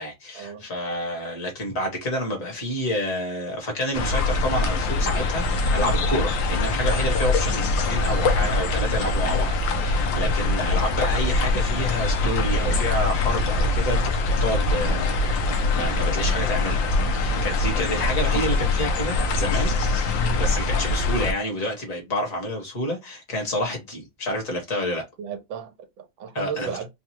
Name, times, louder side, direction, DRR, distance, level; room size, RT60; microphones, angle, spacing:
voice 1, 0.0-14.0 14.4-16.9 17.1-25.0 26.3-26.8, left 1 dB, 45° left, 1.8 m, -29 dB
sound 1, 3.9-21.3, left 2 dB, 80° left, 1.5 m, -23 dB
voice 2, 25.2-26.9, right 7 dB, 80° right, 1.5 m, -35 dB
4.6 x 2.3 x 2.8 m
omnidirectional pair, 2.1 m